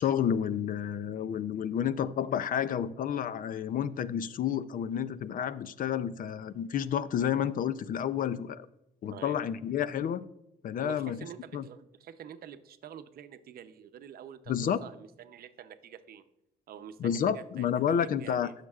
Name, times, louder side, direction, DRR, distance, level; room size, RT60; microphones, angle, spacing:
voice 1, 0.0-8.7 9.0-10.2 10.6-11.2 11.5-11.6 14.5-14.8 17.0-18.5, left 9 dB, 50° left, 16 dB, 0.5 m, -30 dB
voice 2, 9.1-9.4 10.8-16.2 16.7-18.5, right 9 dB, 60° right, 9 dB, 0.7 m, -47 dB
16.0 x 6.5 x 2.4 m, 0.85 s
cardioid pair, 110°, 18 cm